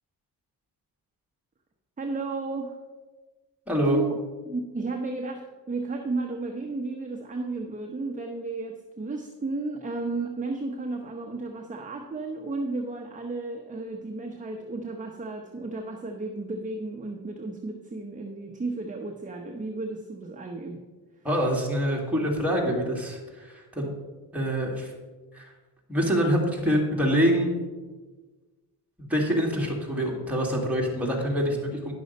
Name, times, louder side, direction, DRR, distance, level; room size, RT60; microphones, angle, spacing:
voice 1, 2.0-2.8 3.8-4.2 4.5-20.8 21.2-21.3, right 3 dB, 20° right, 2 dB, 0.8 m, -33 dB
voice 2, 3.7-4.0 21.2-23.9 24.3-24.9 25.3-25.5 25.9-27.6 29.0-31.9, equal, 5° right, -2 dB, 2.2 m, -25 dB
10.5 x 6.2 x 5.3 m, 1.3 s
cardioid pair, 120°, 40 cm